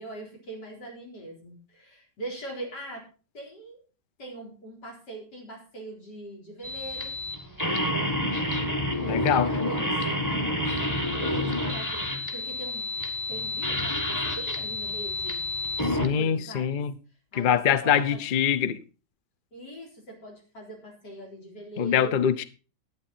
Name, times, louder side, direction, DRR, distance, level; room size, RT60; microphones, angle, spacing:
voice 1, 0.0-3.1 3.3-3.8 4.2-7.1 9.1-12.9 13.3-15.5 16.0-16.8 17.3-18.2 19.5-22.2, right 2 dB, 75° left, 4.6 m, -42 dB
sound 1, 6.6-16.1, left 1 dB, 10° left, 1.4 m, -29 dB
voice 2, 9.0-9.6 15.8-16.9 17.3-18.8 21.8-22.4, left 8 dB, 50° left, 0.6 m, -24 dB
12.0 x 9.1 x 4.3 m
omnidirectional pair, 1.8 m